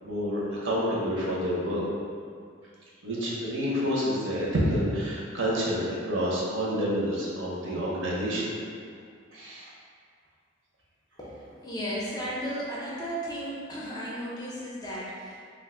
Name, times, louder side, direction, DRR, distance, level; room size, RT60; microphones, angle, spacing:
voice 1, 0.0-1.8 3.0-8.5 9.3-9.7, equal, 70° right, -6 dB, 0.7 m, -28 dB
voice 2, 11.2-15.4, equal, 20° left, -6 dB, 0.4 m, -35 dB
2.5 x 2.3 x 3.6 m, 2.1 s
head